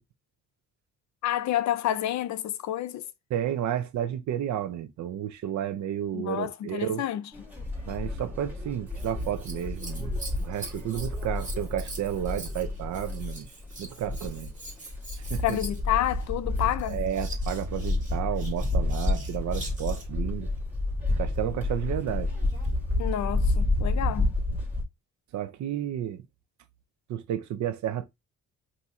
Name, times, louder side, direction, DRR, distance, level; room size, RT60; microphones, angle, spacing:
voice 1, 1.2-3.1 6.1-7.3 15.4-17.0 23.0-24.3, left 12 dB, 65° left, 0.6 m, -29 dB
voice 2, 3.3-7.0 7.9-10.1 10.4-13.5 13.8-14.5 15.3-15.6 16.9-20.5 21.2-22.3 25.3-26.2 27.1-28.1, right 10 dB, 70° right, 0.6 m, -31 dB
sound 1, 7.3-24.8, left 2 dB, 5° right, 2.2 m, -30 dB
Scissors, 8.9-20.2 22.2-22.8 23.5-23.6, right 2 dB, 25° right, 1.7 m, -44 dB
4.2 x 2.8 x 3.6 m
cardioid pair, 90°, 30 cm